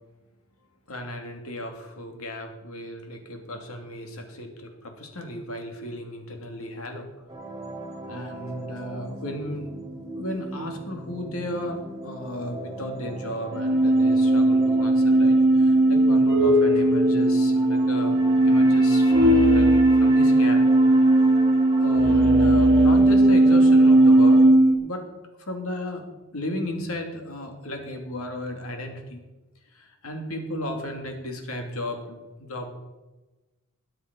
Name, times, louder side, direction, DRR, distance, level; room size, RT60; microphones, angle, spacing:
voice 1, 0.9-7.1 8.1-9.7 10.1-20.6 21.4-24.4 24.8-25.0 25.4-26.0 26.3-29.2 29.7-32.7, left 1 dB, 70° left, 3 dB, 2.8 m, -34 dB
sound 1, 7.3-24.5, equal, 15° right, 2.4 m, -37 dB
sound 2, 13.5-24.7, right 1 dB, 55° right, 1.3 m, -17 dB
20.0 x 7.8 x 5.4 m, 1.1 s
head